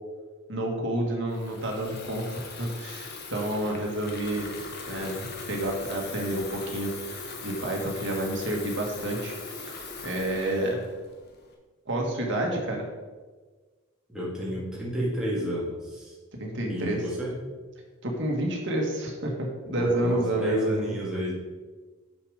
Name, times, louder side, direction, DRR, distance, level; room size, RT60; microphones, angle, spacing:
voice 1, 0.5-4.5 4.9-9.7 10.0-10.8 11.9-12.8 16.4-17.0 18.0-20.9, right 1 dB, 55° right, 0 dB, 1.9 m, -29 dB
Water tap faucet / Fill (with liquid), 1.3-11.5, left 4 dB, 50° left, 1.3 m, -40 dB
voice 2, 14.1-16.2 16.7-17.4 19.7-21.3, equal, 5° right, -7 dB, 2.2 m, -31 dB
7.0 x 7.0 x 5.1 m, 1.3 s
head